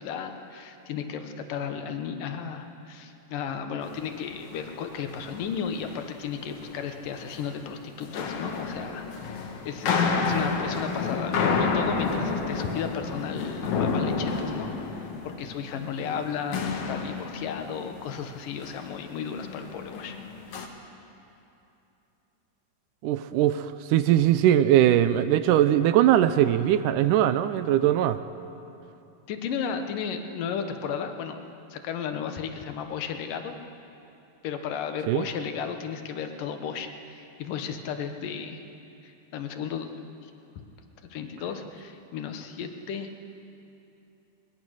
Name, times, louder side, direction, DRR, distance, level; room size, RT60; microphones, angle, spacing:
voice 1, 0.0-9.1 9.3-14.7 15.2-20.2 29.3-31.4 31.7-33.6 34.4-38.6 39.0-40.0 41.1-43.2, left 7 dB, 80° left, 6 dB, 2.7 m, -34 dB
sound 1, 3.8-4.1 4.4-4.8 5.1-6.8 7.1-7.4 8.0-16.3 16.5-18.4 18.6-19.0 19.3-20.7, left 4 dB, 65° left, 2.7 m, -30 dB
voice 2, 23.0-28.2 35.1-35.3, right 11 dB, 80° right, 12 dB, 2.1 m, -21 dB
21.5 x 20.5 x 6.5 m, 2.8 s
omnidirectional pair, 3.9 m